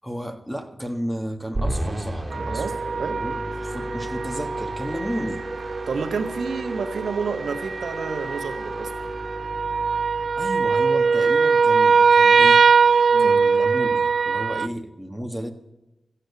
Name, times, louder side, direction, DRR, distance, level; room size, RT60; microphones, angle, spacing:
voice 1, 0.0-2.7 3.1-5.4 10.4-12.6 12.9-15.5, equal, ahead, 4 dB, 1.5 m, -33 dB
sound 1, 1.5-10.9, right 1 dB, 25° right, 2.1 m, -33 dB
sound 2, 2.3-14.7, right 5 dB, 65° right, 0.4 m, -21 dB
voice 2, 2.5-3.2 5.9-8.9 13.1-13.3, right 5 dB, 85° right, 5 dB, 1.4 m, -30 dB
14.5 x 8.3 x 8.3 m, 0.98 s
wide cardioid pair, 80°, 0 cm